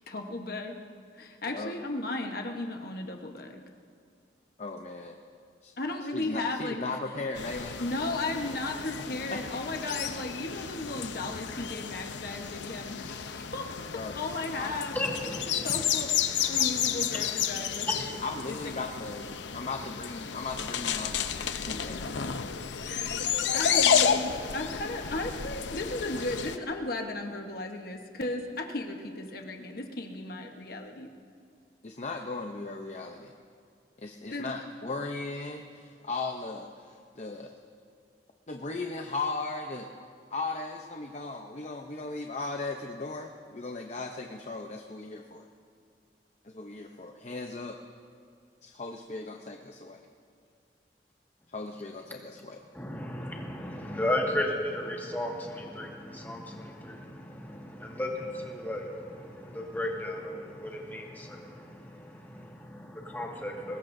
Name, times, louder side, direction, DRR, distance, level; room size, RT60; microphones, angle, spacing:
voice 1, 0.1-0.8 1.1-3.6 5.8-6.8 7.8-13.7 13.9-15.3 15.6-18.2 18.5-18.7 22.7-31.1 34.3-34.5, left 2 dB, 55° left, 3 dB, 1.1 m, -35 dB
voice 2, 4.6-5.2 5.6-5.7 6.1-7.8 9.3-9.4 13.9-14.8 18.2-21.2 21.6-22.4 31.8-33.3 34.0-37.6 38.5-39.9 40.3-45.5 46.4-47.8 48.6-50.0 51.5-52.6, left 3 dB, 40° left, 3 dB, 0.7 m, -37 dB
sound 1, 7.4-26.6, left 8 dB, 90° left, 0.7 m, -31 dB
voice 3, 14.9-15.4 17.9-18.0 52.8-63.8, left 1 dB, 10° left, -1 dB, 1.8 m, -34 dB
23.0 x 20.5 x 2.7 m, 2.3 s
head